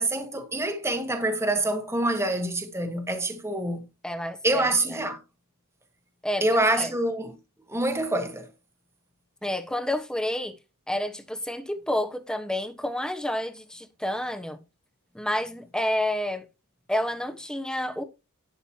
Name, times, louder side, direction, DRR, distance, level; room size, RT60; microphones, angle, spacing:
voice 1, 0.0-3.8 4.4-5.2 6.4-7.3 7.7-8.4, right 1 dB, 10° right, 1.5 m, -26 dB
voice 2, 4.0-5.0 6.2-6.9 9.4-10.6 10.9-14.6 15.1-16.4 16.9-18.0, left 1 dB, 5° left, 1.2 m, -29 dB
11.5 x 9.0 x 2.9 m
head